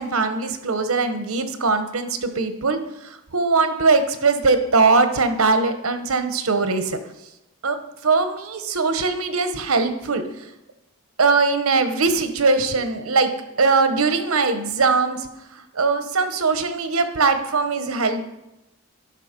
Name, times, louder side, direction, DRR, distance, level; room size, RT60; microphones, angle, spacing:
voice 1, 0.0-2.8 3.3-7.0 7.6-7.8 8.0-10.2 11.2-13.3 13.6-15.3 15.7-18.3, right 4 dB, 90° right, 8 dB, 1.0 m, -20 dB
12.0 x 5.5 x 5.2 m, 0.91 s
head